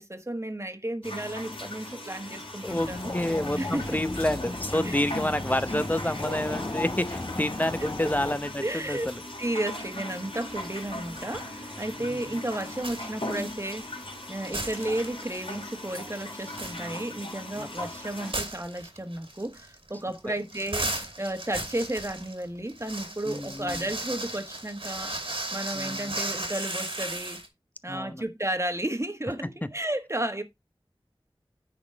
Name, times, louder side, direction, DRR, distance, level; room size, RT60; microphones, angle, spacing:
voice 1, 0.0-3.1 3.6-4.0 4.8-5.0 7.8-7.9 8.6-9.1 9.4-13.9 14.3-27.4 27.8-30.4, right 1 dB, 30° right, 1.6 m, -33 dB
sound 1, 1.0-18.3, left 1 dB, 65° left, 3.2 m, -39 dB
voice 2, 2.6-9.2 12.0-12.4 17.6-17.7 20.2-20.3 23.3-23.9 25.7-26.2 27.9-28.2, left 1 dB, 15° left, 0.8 m, -29 dB
sound 2, 2.7-8.4, left 2 dB, 40° left, 1.3 m, -35 dB
sound 3, 10.5-11.4 11.7-14.2 14.4-15.4 15.7-15.8 16.2-27.5, right 2 dB, 70° right, 2.4 m, -36 dB
9.6 x 4.3 x 4.5 m
wide cardioid pair, 45°, 10 cm